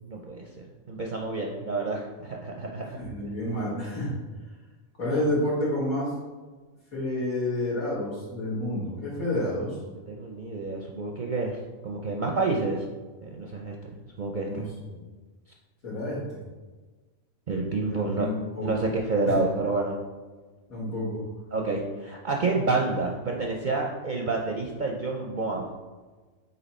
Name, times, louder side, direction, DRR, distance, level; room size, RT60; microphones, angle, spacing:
voice 1, 0.0-3.0 10.1-11.6 11.8-12.8 13.2-14.7 17.5-18.3 18.6-20.0 21.5-25.7, right 3 dB, 55° right, -1 dB, 0.5 m, -29 dB
voice 2, 3.0-4.2 5.0-6.1 6.9-9.8 14.4-15.0 15.8-16.4 17.9-18.8 19.3-19.4 20.7-21.2, left 1 dB, 80° left, -7 dB, 2.5 m, -29 dB
8.5 x 2.9 x 4.2 m, 1.3 s
omnidirectional pair, 1.5 m